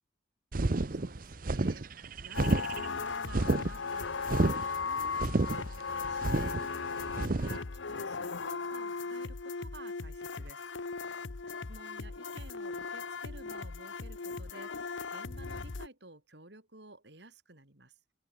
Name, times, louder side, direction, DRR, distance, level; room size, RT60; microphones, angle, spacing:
sound 1, 0.5-7.6, right 2 dB, 45° right, 0.7 m, -31 dB
voice 1, 0.6-10.7 11.7-18.0, right 2 dB, 65° right, 4.0 m, -53 dB
sound 2, 2.3-15.9, left 4 dB, 85° left, 0.9 m, -37 dB
open air
head